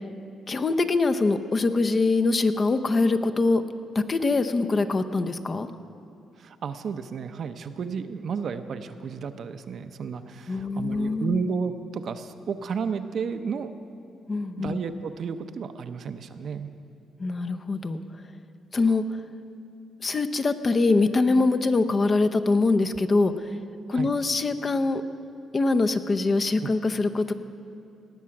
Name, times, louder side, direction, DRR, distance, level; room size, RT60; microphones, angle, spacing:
voice 1, 0.5-3.6 3.9-5.7 10.5-11.5 14.3-14.8 17.2-18.0 18.7-19.0 20.0-23.5 23.9-25.0 25.5-27.3, left 3 dB, 35° left, 8 dB, 0.6 m, -23 dB
voice 2, 6.4-13.7 14.6-16.7 23.9-24.1 26.6-26.7, right 6 dB, 60° right, 9 dB, 0.6 m, -32 dB
18.5 x 7.4 x 5.9 m, 2.5 s
cardioid pair, 90°, 0 cm